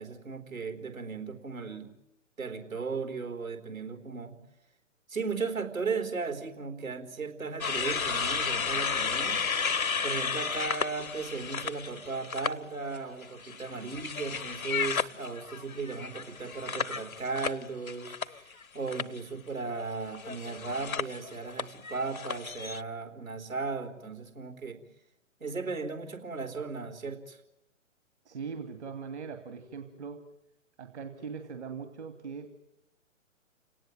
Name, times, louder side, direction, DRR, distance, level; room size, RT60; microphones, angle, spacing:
voice 1, 0.0-1.9 2.4-4.3 5.1-9.4 10.0-24.8 25.4-27.4, right 4 dB, 75° right, 6 dB, 4.2 m, -36 dB
sound 1, 7.6-12.5 12.9-18.6 18.9-19.2 20.1-22.8, left 5 dB, 85° left, 0.9 m, -33 dB
voice 2, 28.3-30.2 30.8-32.6, right 5 dB, 55° right, 7 dB, 2.5 m, -40 dB
30.0 x 18.5 x 9.3 m, 0.86 s
figure-of-eight pair, 125°, 40 cm